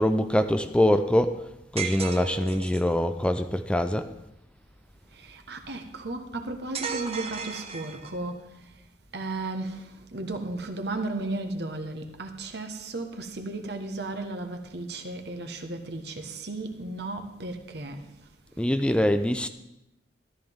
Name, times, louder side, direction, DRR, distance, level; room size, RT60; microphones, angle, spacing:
voice 1, 0.0-1.5 1.7-4.1 18.6-19.5, left 1 dB, 5° left, 0.4 m, -24 dB
sound 1, 1.8-2.9 6.7-8.3, right 6 dB, 35° right, 0.9 m, -34 dB
voice 2, 5.1-8.4 9.1-18.1, right 2 dB, 65° right, 1.3 m, -35 dB
13.5 x 13.0 x 3.6 m
head